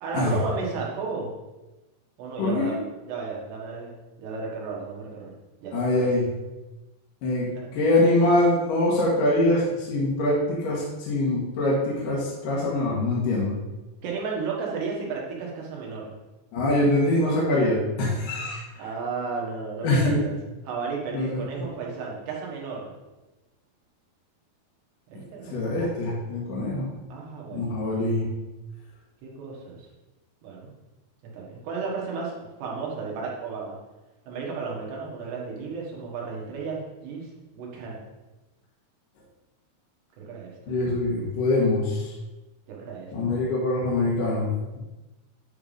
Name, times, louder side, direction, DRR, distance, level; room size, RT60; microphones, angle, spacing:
voice 1, 0.0-1.3 2.2-2.8 3.1-5.3 5.6-6.0 7.5-7.7 14.0-16.2 18.8-20.4 20.6-22.9 25.1-25.6 27.1-27.8 29.2-29.9 30.4-30.7 31.3-33.8 34.3-37.3 37.5-38.0 40.2-40.7 42.7-43.3, right 4 dB, 70° right, -3 dB, 3.7 m, -33 dB
voice 2, 2.4-2.7 5.7-6.3 7.2-13.6 16.5-18.6 19.8-20.2 21.1-21.7 25.1-25.2 25.5-26.9 27.5-28.2 40.7-42.1 43.1-44.5, left 1 dB, 60° left, -6 dB, 2.7 m, -24 dB
10.5 x 3.6 x 5.0 m, 1.1 s
omnidirectional pair, 5.1 m